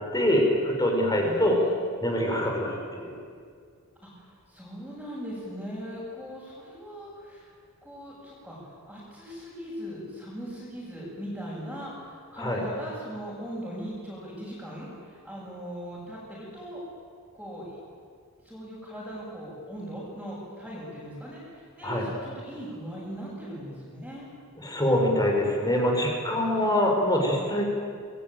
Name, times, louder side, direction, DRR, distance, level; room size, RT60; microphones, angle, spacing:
voice 1, 0.1-1.6 2.0-3.1 12.4-12.6 21.8-22.1 24.6-27.7, left 1 dB, 20° left, 1 dB, 4.7 m, -24 dB
voice 2, 1.2-1.8 4.0-7.5 7.8-8.6 8.9-16.8 17.3-17.8 18.4-24.3 26.4-26.8, equal, ahead, -8 dB, 7.5 m, -39 dB
28.5 x 21.0 x 9.2 m, 2.2 s
head